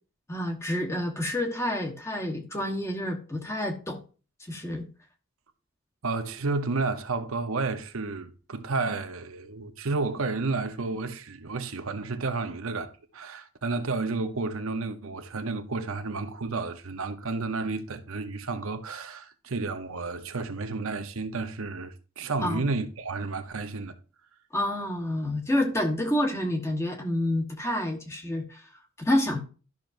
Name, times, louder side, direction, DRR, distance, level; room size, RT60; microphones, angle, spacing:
voice 1, 0.3-4.0 4.5-4.9 22.4-22.6 24.5-28.7 29.0-29.4, left 1 dB, 10° left, 1.1 m, -28 dB
voice 2, 6.0-24.0, right 3 dB, 75° right, 0.8 m, -31 dB
12.0 x 6.0 x 2.6 m
head